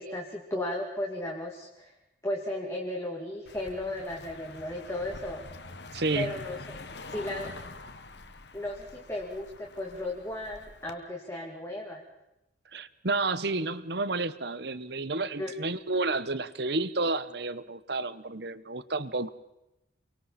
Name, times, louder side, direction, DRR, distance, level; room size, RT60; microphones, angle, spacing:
voice 1, 0.0-1.9 2.2-5.4 6.1-6.8 7.1-7.6 8.5-12.0 15.4-15.5, left 1 dB, 15° left, 2.5 m, -35 dB
Car passing by, 3.5-10.9, left 3 dB, 60° left, 1.5 m, -45 dB
voice 2, 5.9-6.3 12.7-19.3, right 3 dB, 55° right, 1.1 m, -31 dB
29.0 x 23.5 x 4.3 m
head